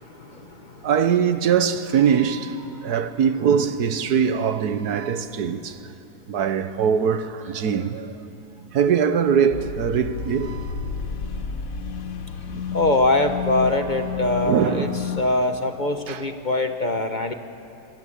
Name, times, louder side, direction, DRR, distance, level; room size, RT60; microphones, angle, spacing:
voice 1, 0.1-0.6 2.7-2.9 12.7-14.9 15.2-17.3, left 2 dB, 30° left, 1.0 m, -23 dB
voice 2, 0.8-5.9 6.3-8.2 8.7-10.8 12.5-12.6 14.4-15.0 16.1-16.2, right 7 dB, 70° right, 1.5 m, -22 dB
sound 1, 9.5-15.2, left 6 dB, 55° left, 1.6 m, -31 dB
26.0 x 25.5 x 8.6 m
omnidirectional pair, 1.8 m